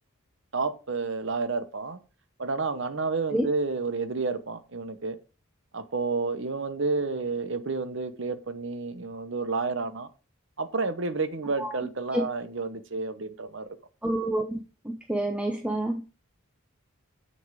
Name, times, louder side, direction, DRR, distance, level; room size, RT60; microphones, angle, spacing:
voice 1, 0.5-2.0 2.4-5.2 5.7-10.1 10.6-13.7, right 3 dB, 55° right, 0.9 m, -30 dB
voice 2, 14.0-14.6 14.8-16.0, right 1 dB, 5° right, 0.7 m, -28 dB
7.9 x 6.4 x 5.0 m
head